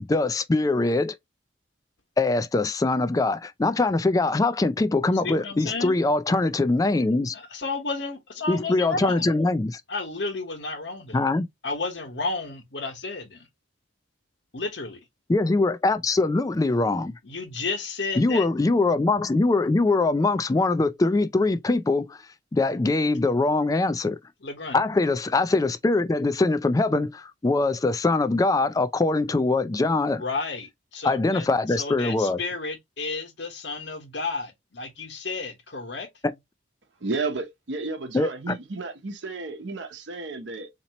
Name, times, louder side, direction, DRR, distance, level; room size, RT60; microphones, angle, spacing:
voice 1, 0.1-1.2 2.2-7.3 8.5-9.8 11.1-11.5 15.3-17.1 18.2-22.2 22.5-24.2 24.7-30.2 31.0-32.4 36.2-36.3 38.1-38.6, left 2 dB, 20° left, 0.3 m, -23 dB
voice 2, 5.2-6.0 7.3-9.3 9.9-11.2 11.6-13.5 14.5-15.0 17.2-18.5 24.4-24.8 30.2-36.1, left 3 dB, 70° left, 1.2 m, -32 dB
voice 3, 37.0-40.7, right 3 dB, 75° right, 0.8 m, -32 dB
4.1 x 2.9 x 2.8 m
head